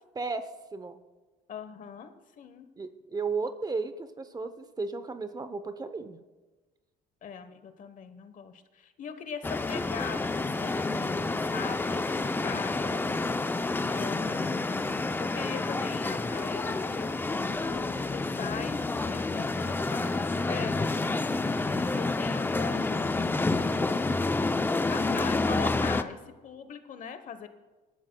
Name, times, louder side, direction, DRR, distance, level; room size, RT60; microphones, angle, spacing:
voice 1, 0.1-1.0 2.8-6.2, right 4 dB, 25° right, 10 dB, 0.8 m, -34 dB
voice 2, 1.5-2.7 7.2-13.0 13.9-14.7 15.2-20.9 21.6-24.2 24.9-27.5, left 7 dB, 50° left, 10 dB, 1.0 m, -41 dB
sound 1, 9.4-26.0, left 3 dB, 10° left, 0.5 m, -29 dB
23.0 x 12.5 x 2.3 m, 1.3 s
cardioid pair, 110°, 17 cm